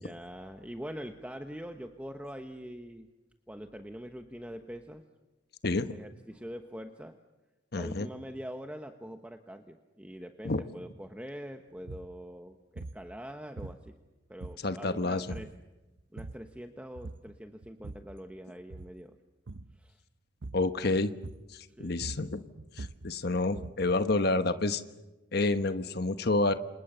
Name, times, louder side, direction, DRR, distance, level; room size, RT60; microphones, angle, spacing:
voice 1, 0.0-3.1 3.5-5.0 5.9-7.2 7.7-14.0 14.3-15.5 16.1-19.2 19.7-20.0 21.7-22.1, equal, 5° right, 5 dB, 1.1 m, -44 dB
voice 2, 7.7-8.1 10.4-10.6 14.6-15.3 20.5-21.1 21.8-22.4 22.8-24.8 25.3-26.5, left 2 dB, 55° left, 10 dB, 1.2 m, -28 dB
sound 1, 11.8-12.1 12.8-13.1 13.6-14.1 14.4-14.9 15.3-15.6 16.0-16.5 17.0-17.3 17.6-18.2 18.6-19.0 19.5-19.8 20.4-20.8 21.2-21.6 21.9-23.9, right 2 dB, 70° right, 0.8 m, -43 dB
29.0 x 27.0 x 6.9 m, 1.1 s
head